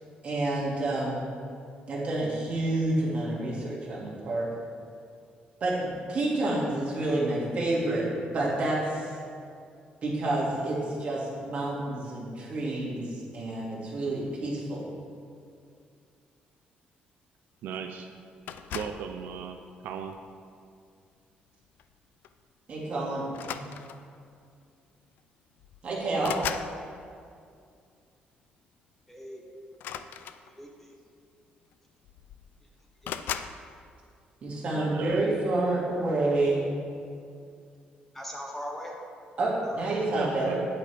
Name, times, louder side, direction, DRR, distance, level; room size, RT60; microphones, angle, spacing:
voice 1, 0.2-1.2 1.9-4.4 5.6-8.1 8.3-9.2 10.0-14.8 22.7-23.2 23.5-23.7 25.8-26.4 34.4-36.7 39.4-40.6, right 2 dB, 40° right, -5 dB, 2.3 m, -29 dB
voice 2, 17.6-18.1 18.7-19.6 19.8-20.2 34.7-35.3 40.2-40.7, right 7 dB, 85° right, 6 dB, 0.5 m, -36 dB
sound 1, 18.5-19.1 20.0-20.3 21.8-21.9 22.2-22.4 23.3-24.2 25.2-25.3 25.6-26.8 29.7-30.8 31.7-31.8 32.0-32.6 33.0-33.6, left 9 dB, 75° left, 0.4 m, -37 dB
voice 3, 29.1-29.4 30.4-31.0 32.6-32.7 33.0-33.2 38.1-39.0 39.6-39.9, equal, 10° left, -1 dB, 0.8 m, -40 dB
9.2 x 8.3 x 3.5 m, 2.3 s
cardioid pair, 155°, 3 cm